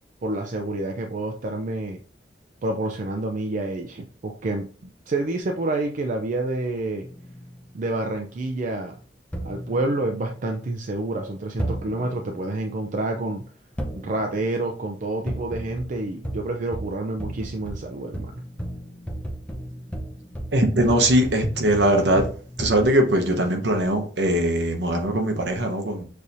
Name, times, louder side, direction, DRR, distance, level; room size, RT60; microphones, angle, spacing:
voice 1, 0.2-2.0 2.6-4.7 5.1-7.1 7.7-9.0 9.4-13.4 13.9-18.4, right 2 dB, 45° right, 0.4 m, -28 dB
sound 1, 7.0-7.6 9.3-10.7 11.6-12.5 13.8-14.6 15.3-22.9, right 1 dB, 5° left, 0.5 m, -34 dB
voice 2, 20.5-22.3 22.6-26.1, right 1 dB, 70° right, 0.9 m, -21 dB
6.4 x 2.7 x 2.5 m
head